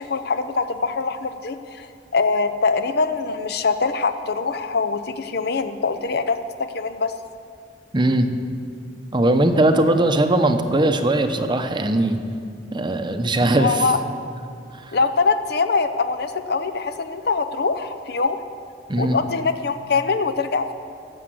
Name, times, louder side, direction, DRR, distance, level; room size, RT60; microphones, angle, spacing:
voice 1, 0.0-7.1 13.6-14.0 14.9-18.4 19.0-20.7, left 4 dB, 60° left, 10 dB, 0.7 m, -23 dB
voice 2, 7.9-8.3 9.1-12.2 12.7-13.9 14.8-15.0 18.9-19.2, right 1 dB, 25° right, 7 dB, 0.8 m, -19 dB
16.0 x 7.1 x 7.7 m, 2.3 s
head